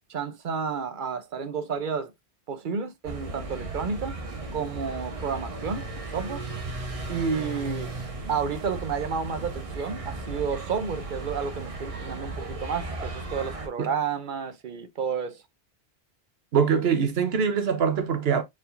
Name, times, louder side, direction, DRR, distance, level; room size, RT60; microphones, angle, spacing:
voice 1, 0.1-2.1 2.5-4.1 4.5-6.4 7.1-7.9 8.3-15.4, right 6 dB, 55° right, 0.8 m, -31 dB
sound 1, 3.0-13.7, right 2 dB, 35° right, 1.0 m, -36 dB
voice 2, 16.5-18.4, right 6 dB, 75° right, 1.1 m, -23 dB
4.6 x 3.6 x 2.5 m
omnidirectional pair, 1.0 m